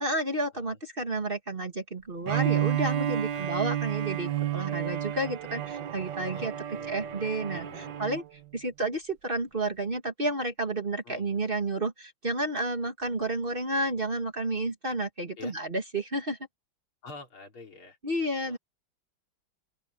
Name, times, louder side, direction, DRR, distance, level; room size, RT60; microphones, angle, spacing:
voice 1, 0.0-6.5 6.9-7.7 8.0-8.2 8.5-16.4 18.0-18.6, right 2 dB, 25° right, 2.0 m, -31 dB
Bowed string instrument, 2.2-8.3, right 11 dB, 65° right, 1.4 m, -31 dB
voice 2, 3.3-3.7 6.3-8.1 11.0-11.4 15.4-15.5 17.0-18.0 18.5-18.6, left 3 dB, 85° left, 4.7 m, -48 dB
open air
omnidirectional pair, 2.3 m